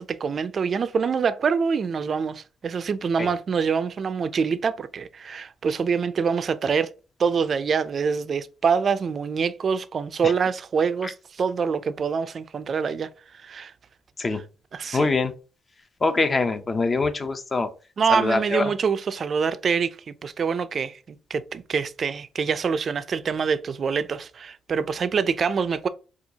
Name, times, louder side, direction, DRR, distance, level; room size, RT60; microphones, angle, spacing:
voice 1, 0.0-6.9 7.2-13.7 14.7-15.1 18.0-25.9, right 6 dB, 50° right, 0.3 m, -25 dB
voice 2, 14.9-15.3 16.0-17.7 18.1-18.7, left 3 dB, 30° left, 0.5 m, -23 dB
4.3 x 2.3 x 2.7 m
cardioid pair, 90°, 0 cm